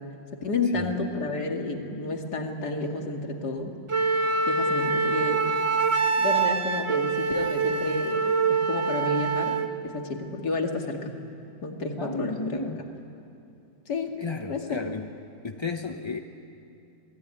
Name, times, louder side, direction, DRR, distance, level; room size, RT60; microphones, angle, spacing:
voice 1, 0.3-3.7 4.5-5.5 6.2-11.1 11.6-12.6 13.9-14.2 14.5-14.8, left 3 dB, 60° left, 2 dB, 2.8 m, -30 dB
Wind instrument woodwind instrument, 3.9-9.7, right 4 dB, 20° right, 1.1 m, -25 dB
voice 2, 12.0-12.8 14.2-15.1 15.4-16.2, left 3 dB, 30° left, 4 dB, 0.5 m, -33 dB
28.0 x 20.0 x 9.8 m, 2.7 s
omnidirectional pair, 1.9 m